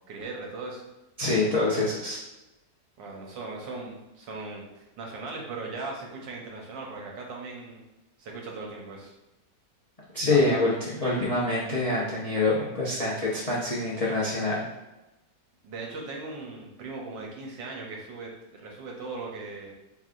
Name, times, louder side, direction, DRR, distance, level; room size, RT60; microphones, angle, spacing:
voice 1, 0.1-0.8 3.0-7.8 8.2-9.1 10.3-10.7 15.6-19.7, right 3 dB, 85° right, -1 dB, 1.6 m, -38 dB
voice 2, 1.2-2.2 10.1-14.6, left 2 dB, 55° left, -7 dB, 0.4 m, -25 dB
4.7 x 3.4 x 2.5 m, 0.98 s
omnidirectional pair, 1.9 m